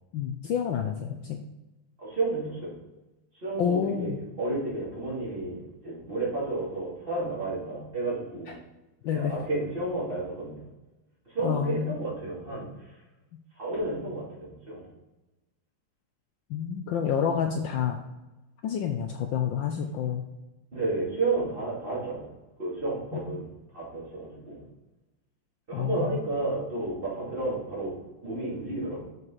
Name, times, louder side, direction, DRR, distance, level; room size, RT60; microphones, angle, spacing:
voice 1, 0.1-1.4 3.6-4.2 9.0-9.3 11.4-12.0 16.5-18.0 18.6-20.2 23.3-23.4 25.7-26.2, left 8 dB, 75° left, 5 dB, 1.2 m, -28 dB
voice 2, 2.0-2.7 3.3-4.1 4.4-8.6 9.1-10.6 11.3-12.9 13.6-14.8 20.7-22.3 22.6-23.5 23.7-24.6 25.7-28.0 28.2-29.0, right 2 dB, 25° right, -7 dB, 3.0 m, -31 dB
7.4 x 5.4 x 3.9 m, 1.0 s
omnidirectional pair, 2.4 m